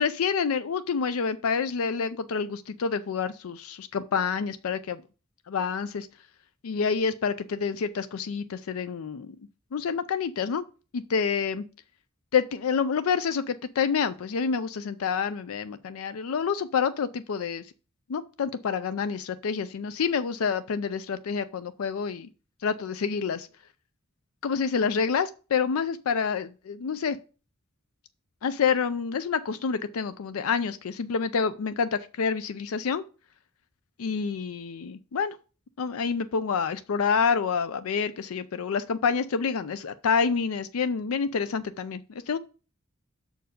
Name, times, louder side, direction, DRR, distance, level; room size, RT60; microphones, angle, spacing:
voice 1, 0.0-5.0 5.5-6.1 6.6-9.4 9.7-10.6 10.9-11.6 12.3-17.6 18.1-22.3 22.6-23.5 24.4-27.2 28.4-33.0 34.0-35.4 35.8-42.4, left 6 dB, 80° left, 0.4 m, -28 dB
6.4 x 4.6 x 6.5 m
head